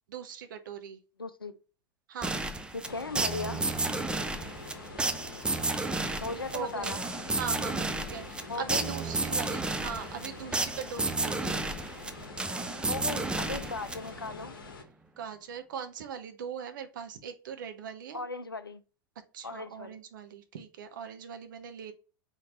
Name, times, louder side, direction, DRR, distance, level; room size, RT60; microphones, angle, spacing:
voice 1, 0.1-1.0 2.1-2.4 6.5-7.0 7.4-11.6 13.8-13.9 15.2-18.2 19.3-21.9, right 7 dB, 65° right, 0.7 m, -40 dB
voice 2, 1.2-1.6 2.7-3.7 6.2-7.0 8.5-8.9 12.8-14.6 18.1-18.8 19.4-20.0, left 3 dB, 90° left, 0.4 m, -37 dB
sound 1, 2.2-14.3, right 3 dB, 10° right, 0.4 m, -32 dB
sound 2, 2.8-14.8, left 4 dB, 70° left, 0.9 m, -46 dB
4.4 x 2.8 x 3.8 m
figure-of-eight pair, 85°, 12 cm